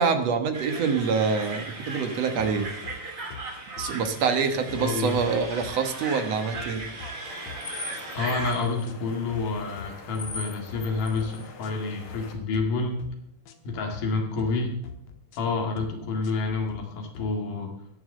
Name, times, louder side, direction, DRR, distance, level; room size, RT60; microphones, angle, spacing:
voice 1, 0.0-2.7 3.8-6.8, right 5 dB, 60° right, 7 dB, 2.3 m, -25 dB
sound 1, 0.5-8.5, right 2 dB, 25° right, 2.7 m, -37 dB
sound 2, 2.4-3.0 3.3-3.5 3.8-4.4 4.7-5.7 6.1-7.1 7.5-7.6 7.9-8.5 8.8-9.0 9.3-9.9 10.2-10.4 10.7-11.3 11.6-11.8 12.1-12.6 13.0-13.2 13.5-14.0 14.4-14.6 14.8-15.4 15.8-15.9 16.2-16.8 17.1-17.3, left 5 dB, 65° left, 2.2 m, -43 dB
voice 2, 4.8-5.2 8.1-13.1 13.7-14.7 15.4-17.7, left 4 dB, 90° left, 1 dB, 3.6 m, -28 dB
sound 3, 7.2-12.3, left 3 dB, 45° left, 2.5 m, -41 dB
19.5 x 7.2 x 6.4 m, 0.74 s
omnidirectional pair, 3.6 m